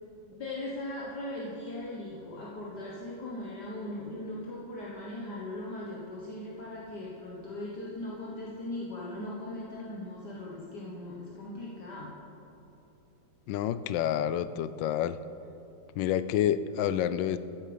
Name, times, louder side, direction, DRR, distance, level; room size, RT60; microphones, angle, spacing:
voice 1, 0.3-12.2, left 1 dB, 60° left, -5 dB, 1.9 m, -39 dB
voice 2, 13.5-15.2 16.0-17.4, left 10 dB, 80° left, 14 dB, 1.2 m, -28 dB
14.0 x 10.0 x 5.1 m, 2.8 s
omnidirectional pair, 2.0 m